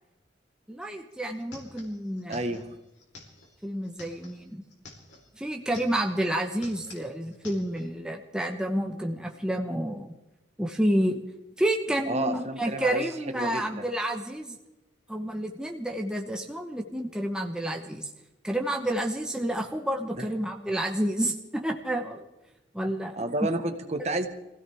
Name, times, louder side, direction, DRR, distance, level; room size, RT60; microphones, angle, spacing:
voice 1, 0.7-2.4 3.6-4.6 5.4-10.1 10.6-11.2 11.6-14.6 15.1-18.1 18.4-22.2 22.7-23.2, right 1 dB, 5° right, 1 dB, 1.1 m, -29 dB
sound 1, 0.8-0.9 1.1-5.3 5.6-6.2 6.5-7.9, left 2 dB, 75° left, 4.0 m, -49 dB
voice 2, 2.3-2.7 12.1-13.9 20.1-20.3 23.1-24.3, right 2 dB, 35° right, 7 dB, 1.4 m, -31 dB
25.0 x 16.0 x 3.6 m, 0.96 s
head